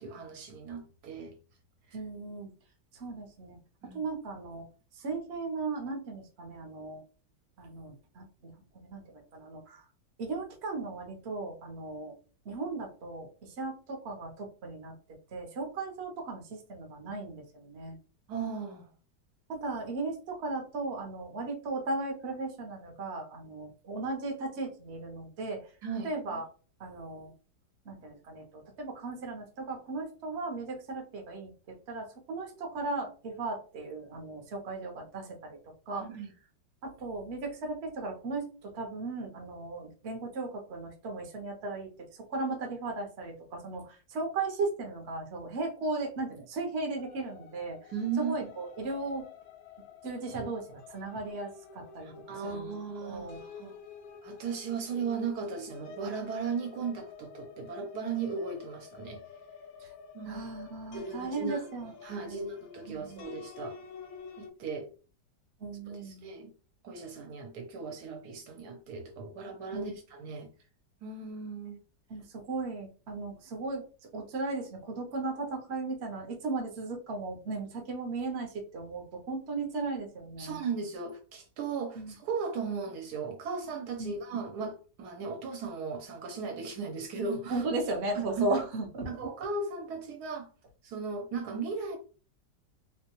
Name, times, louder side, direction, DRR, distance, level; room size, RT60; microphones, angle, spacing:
voice 1, 0.0-1.4 3.8-4.0 18.3-18.9 25.8-26.1 36.1-36.3 47.9-48.4 52.0-53.7 54.2-59.2 60.1-60.4 60.9-63.8 64.4-64.9 66.0-66.5 66.8-70.5 71.0-71.8 80.4-87.6 88.1-88.5 89.1-90.5 90.8-92.0, right 5 dB, 70° right, 1.2 m, -36 dB
voice 2, 1.9-2.5 2.9-4.7 4.9-7.0 7.6-9.8 10.2-12.2 12.4-15.0 15.3-18.0 19.5-25.7 26.0-26.4 26.8-27.3 27.8-35.6 35.9-36.1 36.8-49.3 50.0-52.1 52.4-52.7 53.0-53.4 59.8-59.9 60.3-62.5 62.9-63.3 65.6-66.3 69.7-70.0 72.1-73.8 74.1-80.6 81.9-82.2 84.0-84.2 87.5-89.3, right 3 dB, 50° right, 0.8 m, -36 dB
sound 1, 47.0-64.5, left 6 dB, 70° left, 0.9 m, -49 dB
3.8 x 2.2 x 2.9 m
omnidirectional pair, 1.9 m